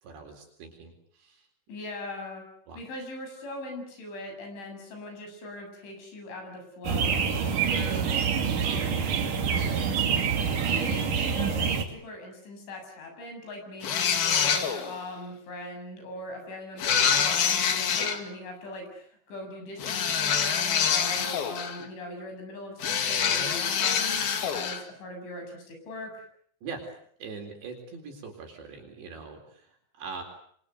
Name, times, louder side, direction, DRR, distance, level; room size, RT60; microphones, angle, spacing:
voice 1, 0.0-1.5 2.7-2.8 7.3-7.4 8.6-10.8 26.6-26.8 27.2-30.2, right 5 dB, 70° right, 3 dB, 6.2 m, -43 dB
voice 2, 1.7-2.4 2.8-7.2 7.5-8.1 10.8-26.2, left 1 dB, 80° left, 4 dB, 9.9 m, -40 dB
sound 1, 6.8-11.8, right 6 dB, 50° right, 3.6 m, -26 dB
sound 2, 13.8-15.0 16.8-18.2 19.8-21.9 22.8-24.8, left 7 dB, 60° left, 3.8 m, -26 dB
28.0 x 24.0 x 8.1 m, 0.64 s
omnidirectional pair, 5.3 m